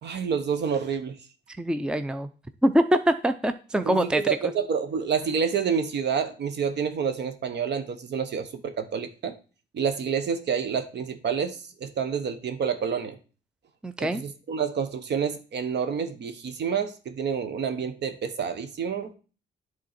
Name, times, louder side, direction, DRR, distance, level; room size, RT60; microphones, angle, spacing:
voice 1, 0.0-1.2 3.8-9.3 9.7-13.2 14.0-19.1, right 6 dB, 60° right, 1.0 m, -28 dB
voice 2, 1.5-2.3 2.6-4.5 13.8-14.2, right 1 dB, 5° right, 0.5 m, -24 dB
10.5 x 3.7 x 4.3 m
cardioid pair, 90°, 20 cm